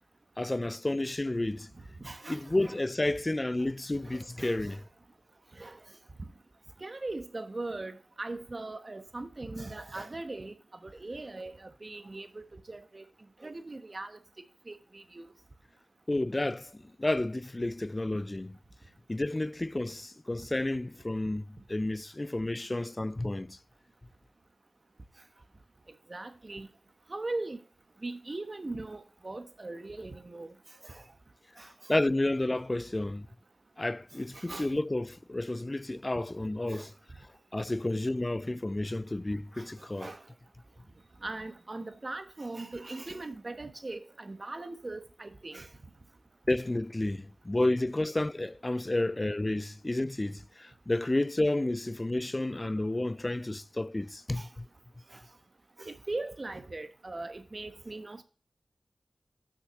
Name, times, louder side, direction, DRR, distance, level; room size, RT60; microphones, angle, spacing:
voice 1, 0.4-1.7 2.3-4.8 16.1-18.6 19.1-23.6 31.9-33.3 33.8-36.9 37.5-40.1 46.5-54.4, left 2 dB, 30° left, 0.4 m, -31 dB
voice 2, 1.7-2.8 4.0-4.8 5.5-5.8 6.2-6.3 6.8-10.5 10.8-13.1 13.4-14.2 14.7-15.3 26.1-26.7 27.1-27.6 28.0-30.5 30.8-31.0 31.6-31.9 34.3-34.7 36.7-36.9 39.6-39.7 40.0-40.2 41.2-45.7 46.5-46.6 54.4-54.5 55.1-55.2 55.8-58.2, right 2 dB, 45° right, 1.2 m, -40 dB
6.5 x 5.9 x 6.8 m
cardioid pair, 50°, 0 cm